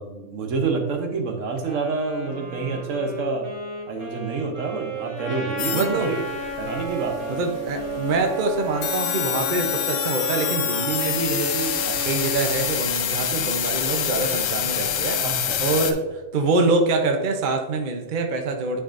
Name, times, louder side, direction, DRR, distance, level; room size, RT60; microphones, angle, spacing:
voice 1, 0.0-3.5 3.9-6.2 6.6-7.2 11.8-12.0 15.2-15.6, right 4 dB, 65° right, 4 dB, 1.2 m, -28 dB
Wind instrument woodwind instrument, 1.6-10.2, right 1 dB, 80° right, 2.3 m, -37 dB
Trumpet, 5.2-12.8, right 1 dB, 10° right, 1.4 m, -33 dB
sound 1, 5.6-15.9, left 9 dB, 65° left, 0.9 m, -27 dB
voice 2, 5.7-6.1 7.3-11.8 12.0-15.2 15.6-18.8, right 3 dB, 45° right, 4 dB, 0.7 m, -25 dB
9.8 x 4.7 x 2.5 m, 1.1 s
omnidirectional pair, 1.5 m